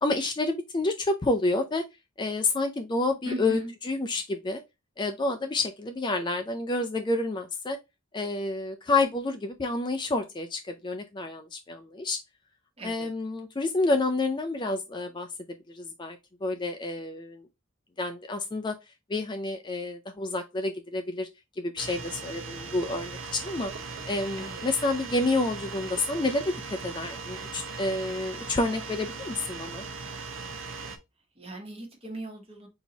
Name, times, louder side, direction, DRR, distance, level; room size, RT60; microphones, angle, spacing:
voice 1, 0.0-1.8 2.2-3.6 3.8-4.6 5.0-7.8 8.1-12.2 12.8-15.3 15.7-17.4 18.0-18.7 19.1-21.3 21.6-23.7 24.1-26.4 26.8-29.8, left 2 dB, 20° left, 0.4 m, -29 dB
voice 2, 3.2-3.7 12.8-13.1 24.3-24.6 31.4-32.7, right 1 dB, 30° right, 1.3 m, -37 dB
sound 1, 21.8-31.0, right 4 dB, 70° right, 0.8 m, -39 dB
4.4 x 2.9 x 3.9 m
head